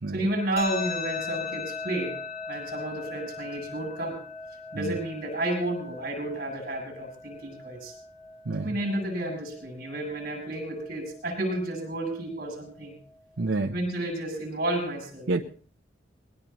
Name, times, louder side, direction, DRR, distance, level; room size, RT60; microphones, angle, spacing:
voice 1, 0.1-2.2 2.5-4.2 4.7-7.9 8.6-12.9 13.7-15.4, right 1 dB, 50° right, 2 dB, 7.8 m, -31 dB
sound 1, 0.6-13.5, left 4 dB, 35° left, 3.2 m, -40 dB
voice 2, 8.4-8.8 13.4-13.7 15.3-15.4, right 3 dB, 75° right, 2 dB, 0.8 m, -28 dB
21.0 x 19.0 x 3.0 m, 0.43 s
head